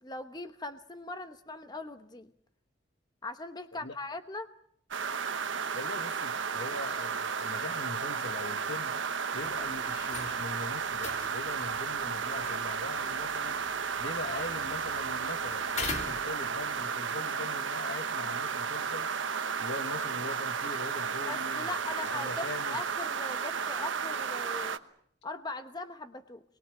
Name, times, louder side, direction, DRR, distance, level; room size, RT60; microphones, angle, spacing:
voice 1, 0.0-2.3 3.2-4.5 21.3-24.8 25.2-26.4, left 2 dB, 20° left, 1.0 m, -40 dB
sound 1, 4.9-24.8, right 6 dB, 75° right, 1.1 m, -33 dB
voice 2, 5.7-8.9 9.3-19.1 19.6-22.8, left 2 dB, 60° left, 1.5 m, -42 dB
sound 2, 9.3-16.8, left 4 dB, 35° left, 1.9 m, -44 dB
26.5 x 22.0 x 7.8 m
head